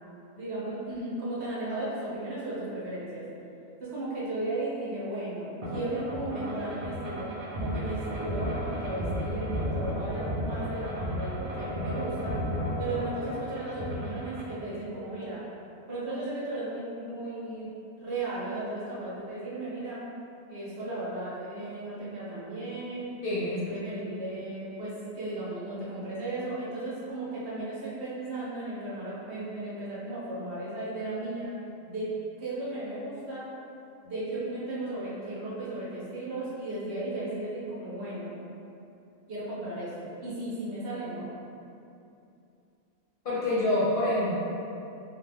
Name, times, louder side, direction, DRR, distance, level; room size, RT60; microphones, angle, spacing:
voice 1, 0.3-3.2 3.8-12.4 12.8-15.4 15.9-17.7 18.0-20.0 20.5-23.1 23.5-31.5 31.9-32.1 32.4-33.5 34.0-38.3 39.3-41.3, right 2 dB, 60° right, -8 dB, 0.9 m, -35 dB
sound 1, 5.6-14.5, equal, 80° right, 0.3 m, -33 dB
voice 2, 23.2-23.6 43.2-44.3, left 1 dB, 50° left, -10 dB, 0.7 m, -26 dB
2.7 x 2.2 x 3.3 m, 2.7 s
omnidirectional pair, 1.3 m